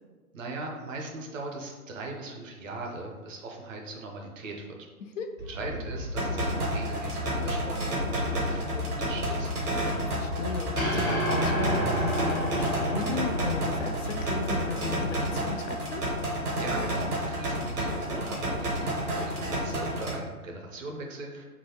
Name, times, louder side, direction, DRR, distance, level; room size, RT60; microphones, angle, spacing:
voice 1, 0.3-4.7 5.5-9.6 16.6-21.4, right 2 dB, 60° right, 1 dB, 0.8 m, -39 dB
sound 1, 5.4-15.2, left 2 dB, 75° left, 1.2 m, -36 dB
sound 2, 6.2-20.2, right 1 dB, 75° right, 1.2 m, -31 dB
voice 2, 9.8-16.0, left 5 dB, 55° left, 6 dB, 0.5 m, -35 dB
sound 3, 10.8-15.1, equal, ahead, 0.4 m, -31 dB
3.8 x 2.3 x 2.9 m, 1.4 s
figure-of-eight pair, 130°, 45 cm